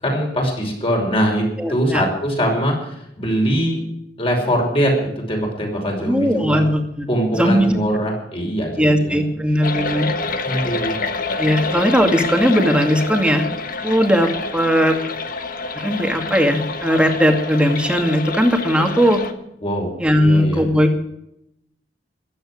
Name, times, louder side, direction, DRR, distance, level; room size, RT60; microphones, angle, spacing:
voice 1, 0.0-3.8 4.2-6.6 7.1-9.2 10.4-11.0 19.6-19.9 20.2-20.7, equal, 30° left, 1 dB, 5.8 m, -22 dB
voice 2, 1.6-2.0 6.0-7.1 7.3-7.8 8.8-10.1 11.4-13.5 13.8-15.0 15.8-19.2 20.0-21.0, equal, 5° right, 4 dB, 2.2 m, -18 dB
sound 1, 9.6-19.3, left 4 dB, 50° left, 1.4 m, -27 dB
16.0 x 12.5 x 6.5 m, 0.79 s
head